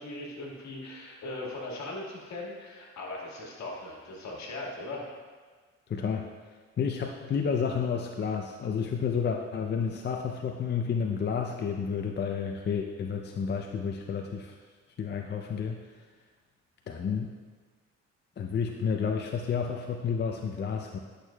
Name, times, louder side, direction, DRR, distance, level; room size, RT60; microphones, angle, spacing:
voice 1, 0.0-5.0, left 2 dB, 65° left, -2 dB, 1.8 m, -39 dB
voice 2, 5.9-6.3 6.8-14.6 15.0-15.8 16.9-17.3 18.4-21.0, left 6 dB, 35° left, 2 dB, 0.5 m, -30 dB
10.5 x 6.4 x 2.3 m, 1.5 s
cardioid pair, 90°, 30 cm